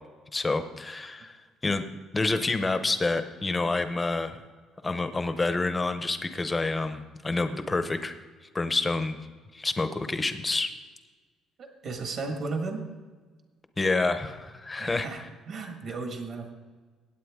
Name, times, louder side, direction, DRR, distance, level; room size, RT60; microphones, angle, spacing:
voice 1, 0.3-1.4 1.6-1.8 2.1-4.4 4.8-8.2 8.5-9.2 9.5-10.7 13.8-15.3, left 3 dB, 15° left, 9 dB, 0.6 m, -28 dB
voice 2, 11.6-12.9 14.8-15.2 15.5-16.5, right 3 dB, 40° right, 4 dB, 1.4 m, -34 dB
17.5 x 8.5 x 3.6 m, 1.4 s
cardioid pair, 180°, 0 cm